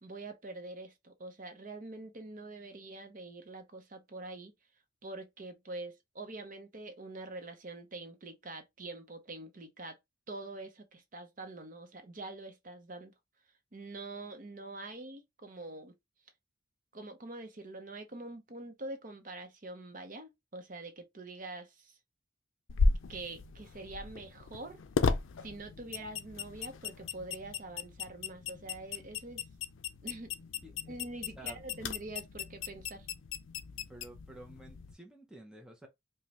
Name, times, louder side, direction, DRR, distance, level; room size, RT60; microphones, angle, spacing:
voice 1, 0.0-4.5 5.0-10.0 10.3-13.1 13.7-15.9 16.9-22.0 23.1-24.8 25.4-29.4 30.0-30.3 30.9-33.1, right 2 dB, 40° right, 0.7 m, -45 dB
sound 1, 22.7-34.9, left 4 dB, 75° left, 0.5 m, -36 dB
voice 2, 30.6-31.0 31.4-31.6 33.9-35.9, right 1 dB, 5° right, 0.6 m, -51 dB
5.1 x 2.2 x 2.9 m
head